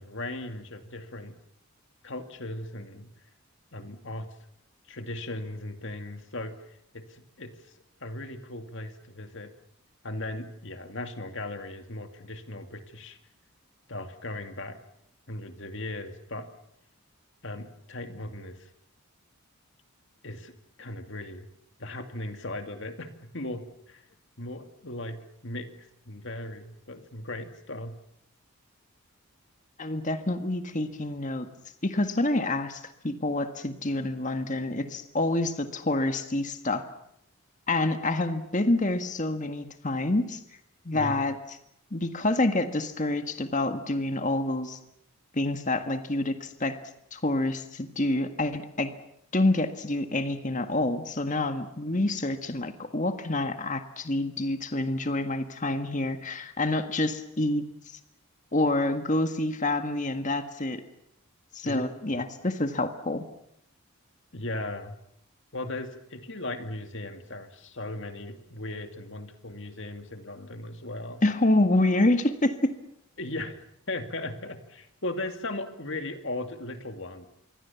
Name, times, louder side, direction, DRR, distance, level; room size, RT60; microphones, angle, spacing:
voice 1, 0.0-1.3 2.0-3.1 3.7-4.3 4.9-7.5 8.0-9.5 10.0-13.2 13.9-14.8 15.3-16.5 17.4-18.7 20.2-20.5 20.8-21.5 21.8-24.0 24.4-25.7 26.1-27.9 40.9-41.1 61.6-61.9 64.3-65.0 65.5-71.2 73.2-73.6 73.9-77.3, left 2 dB, 55° left, 7 dB, 2.4 m, -37 dB
voice 2, 29.8-31.5 31.8-36.9 37.7-40.4 40.8-41.3 41.9-44.8 45.3-46.8 47.1-48.9 49.3-58.0 58.5-60.8 61.5-63.2 71.2-72.7, left 2 dB, 35° left, 8 dB, 1.7 m, -27 dB
27.5 x 23.0 x 7.1 m, 0.76 s
head